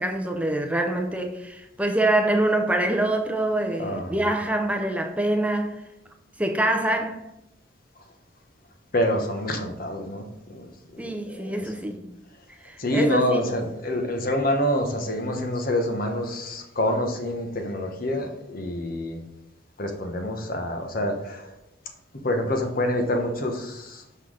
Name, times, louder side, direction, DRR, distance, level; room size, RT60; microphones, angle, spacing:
voice 1, 0.0-5.8 6.4-7.2 11.0-12.1 12.6-13.4, right 1 dB, 10° right, 4 dB, 0.6 m, -25 dB
voice 2, 3.8-4.3 8.9-11.7 12.8-19.2 19.8-21.5 22.2-24.0, left 1 dB, 50° left, 4 dB, 1.1 m, -27 dB
6.1 x 5.6 x 4.9 m, 0.87 s
head